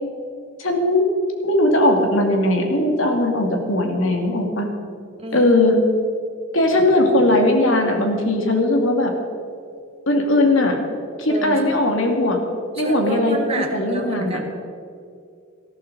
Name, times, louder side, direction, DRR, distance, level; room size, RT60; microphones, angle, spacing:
voice 1, 0.6-1.0 1.4-4.7 5.3-5.8 6.5-9.1 10.1-10.8 11.2-12.4 12.8-14.4, left 1 dB, 75° left, 2 dB, 2.4 m, -19 dB
voice 2, 5.2-5.5 11.3-11.8 12.8-14.4, right 2 dB, 30° right, 2 dB, 1.2 m, -29 dB
18.5 x 13.5 x 4.1 m, 2.3 s
head